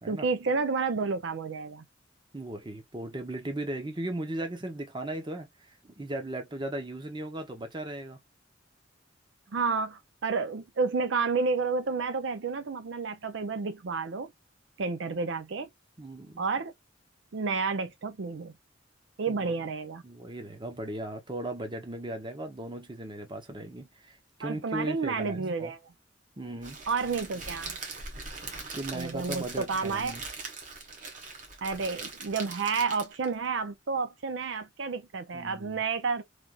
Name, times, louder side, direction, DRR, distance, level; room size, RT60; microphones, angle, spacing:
voice 1, 0.1-1.8 9.5-14.3 14.8-15.7 16.4-16.7 17.3-18.5 19.2-20.0 24.4-25.8 26.9-27.8 28.9-30.2 31.6-36.2, right 4 dB, 70° right, 0.5 m, -30 dB
voice 2, 2.3-5.5 5.8-8.2 16.0-16.4 19.3-19.6 20.0-25.7 26.4-26.8 28.7-30.2 35.3-35.8, right 1 dB, 25° right, 0.9 m, -37 dB
Crackle, 26.6-33.3, right 4 dB, 45° right, 1.2 m, -41 dB
3.4 x 2.5 x 2.3 m
head